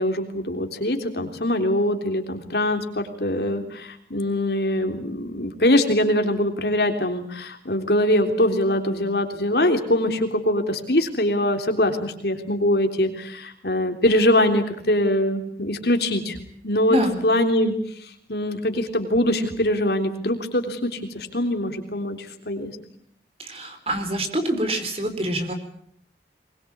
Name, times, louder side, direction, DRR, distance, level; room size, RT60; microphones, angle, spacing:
voice 1, 0.0-16.4 16.6-17.0 17.2-17.7 18.0-22.2 22.4-22.7, left 1 dB, 65° left, 5 dB, 3.4 m, -23 dB
voice 2, 23.4-25.5, right 1 dB, 35° right, 7 dB, 3.9 m, -26 dB
22.5 x 21.5 x 8.7 m, 0.67 s
head